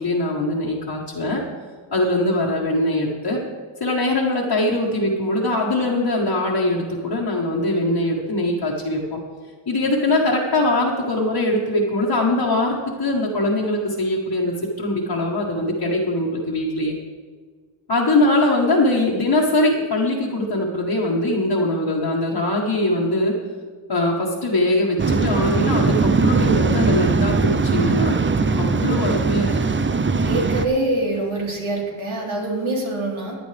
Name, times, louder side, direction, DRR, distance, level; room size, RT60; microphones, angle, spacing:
voice 1, 0.0-1.4 1.9-3.4 3.8-9.2 9.7-16.9 17.9-23.3 23.9-28.2 28.6-29.5, left 1 dB, 55° left, -5 dB, 1.7 m, -22 dB
Waves surf, 25.0-30.7, right 4 dB, 25° right, 0.5 m, -20 dB
voice 2, 30.2-33.4, right 2 dB, 80° right, -3 dB, 3.2 m, -24 dB
15.5 x 10.0 x 3.5 m, 1.5 s
wide cardioid pair, 95°, 48 cm